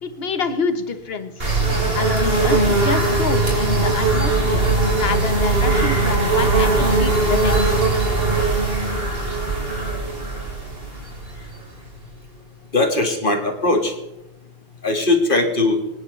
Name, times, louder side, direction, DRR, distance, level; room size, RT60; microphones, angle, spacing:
voice 1, 0.0-1.5 1.9-7.7, left 4 dB, 75° left, 10 dB, 1.3 m, -27 dB
sound 1, 1.4-12.0, right 3 dB, 70° right, 3.3 m, -20 dB
voice 2, 12.7-13.9 14.8-15.8, left 2 dB, 55° left, 3 dB, 2.0 m, -19 dB
24.0 x 9.8 x 3.2 m, 0.93 s
omnidirectional pair, 1.0 m